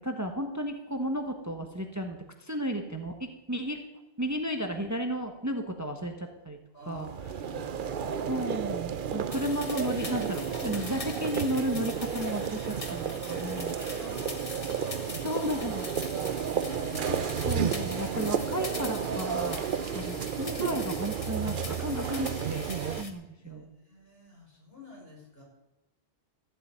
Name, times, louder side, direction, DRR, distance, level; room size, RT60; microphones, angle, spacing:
voice 1, 0.0-3.8 4.2-6.6 6.9-7.1 8.3-13.7 15.1-15.9 17.0-17.2 17.4-19.7 19.9-23.7, right 1 dB, 15° right, 5 dB, 1.2 m, -33 dB
voice 2, 6.7-8.5 9.2-9.3 13.0-14.4 14.9-16.1 16.6-17.6 19.9-20.2 21.7-21.8 23.4-25.4, left 3 dB, 60° left, -3 dB, 6.0 m, -50 dB
sound 1, 6.9-23.0, right 7 dB, 55° right, 0.8 m, -32 dB
sound 2, 9.3-23.1, left 2 dB, 30° left, 1.6 m, -43 dB
14.5 x 7.6 x 9.3 m, 1.0 s
omnidirectional pair, 1.1 m